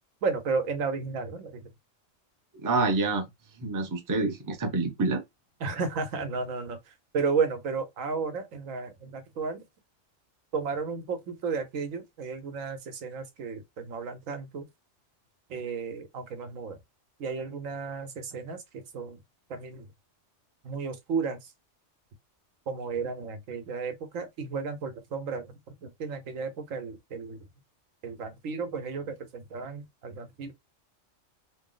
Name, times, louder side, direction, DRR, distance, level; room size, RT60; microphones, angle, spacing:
voice 1, 0.2-1.6 5.6-6.8 7.1-9.6 10.5-14.7 15.5-16.8 17.2-19.2 19.5-19.8 20.6-21.4 22.7-25.5 25.8-27.4 28.0-30.5, right 5 dB, 90° right, 1.2 m, -33 dB
voice 2, 2.6-3.3 3.6-5.2, right 3 dB, 25° right, 0.4 m, -27 dB
3.0 x 2.0 x 3.8 m
omnidirectional pair, 1.3 m